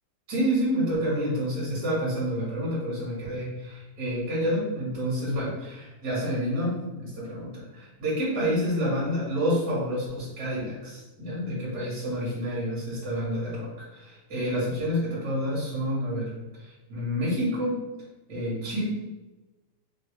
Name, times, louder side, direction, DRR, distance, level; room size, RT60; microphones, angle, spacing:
voice 1, 0.3-16.3 16.6-17.8 18.3-18.8, equal, 90° right, -8 dB, 2.3 m, -29 dB
5.5 x 2.7 x 3.3 m, 1.1 s
omnidirectional pair, 1.8 m